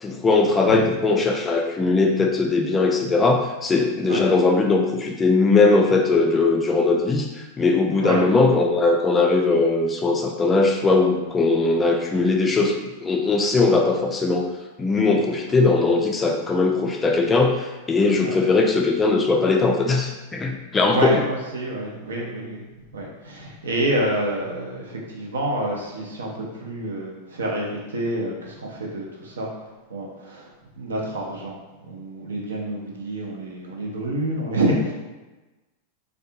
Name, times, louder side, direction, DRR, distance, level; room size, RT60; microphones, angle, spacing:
voice 1, 0.0-7.3 7.6-14.5 14.8-21.2, left 3 dB, 15° left, 1 dB, 0.3 m, -20 dB
voice 2, 20.9-22.7 22.9-29.5 29.9-30.5 30.8-31.6 31.8-34.9, right 1 dB, 70° right, -2 dB, 0.5 m, -28 dB
2.5 x 2.2 x 2.6 m, 1.1 s
figure-of-eight pair, 90°, 0 cm